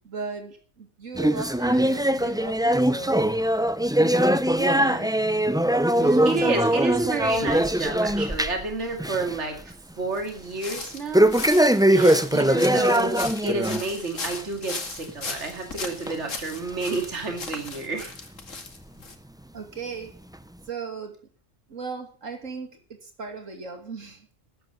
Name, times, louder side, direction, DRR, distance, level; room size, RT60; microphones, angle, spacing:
voice 1, 0.0-3.4 4.0-5.3 5.9-6.5 19.5-20.1 20.7-21.1 21.7-24.3, right 4 dB, 80° right, 5 dB, 3.0 m, -37 dB
sound 1, 1.2-8.7 9.0-9.4 9.7-9.8 11.1-13.8 14.2-14.4 15.1-15.2 16.1-16.2 16.9-17.0, right 1 dB, 5° right, 0.6 m, -21 dB
voice 2, 4.6-5.1 6.2-11.3 11.9-18.1, right 3 dB, 65° right, 4 dB, 2.7 m, -30 dB
sound 2, 10.1-19.1, left 4 dB, 80° left, 2.4 m, -37 dB
12.5 x 11.0 x 6.9 m, 0.38 s
omnidirectional pair, 1.3 m